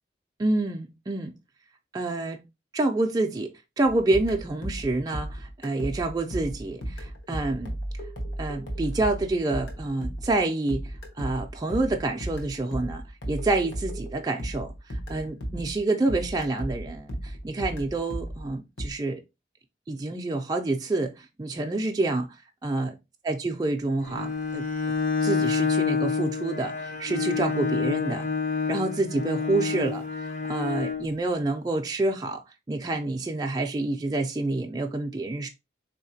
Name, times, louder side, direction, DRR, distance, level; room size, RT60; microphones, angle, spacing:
voice 1, 0.4-1.3 1.9-2.4 2.7-7.7 8.4-19.2 19.9-22.3 22.6-22.9 23.3-24.6 25.2-28.3 28.7-32.4 32.7-35.5, right 2 dB, 20° right, 0.3 m, -28 dB
sound 1, 3.8-15.8 16.1-18.9, right 1 dB, 80° left, 1.0 m, -35 dB
Bowed string instrument, 24.0-31.1, left 5 dB, 40° left, 0.5 m, -28 dB
4.0 x 2.8 x 2.7 m
head